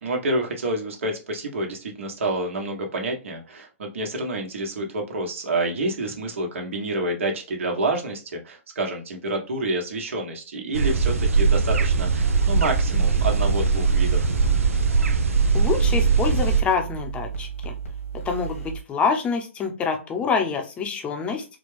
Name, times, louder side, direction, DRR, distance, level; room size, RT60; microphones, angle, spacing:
voice 1, 0.0-14.3, right 2 dB, 70° right, 2 dB, 1.4 m, -28 dB
sound 1, 10.7-16.6, right 4 dB, 85° right, 0.7 m, -20 dB
sound 2, 12.2-18.8, right 6 dB, 90° left, 1.7 m, -34 dB
voice 2, 15.5-17.7 18.2-21.4, left 5 dB, 15° left, 5 dB, 0.7 m, -26 dB
4.3 x 2.3 x 3.3 m, 0.32 s
hypercardioid pair, 140°, 7 cm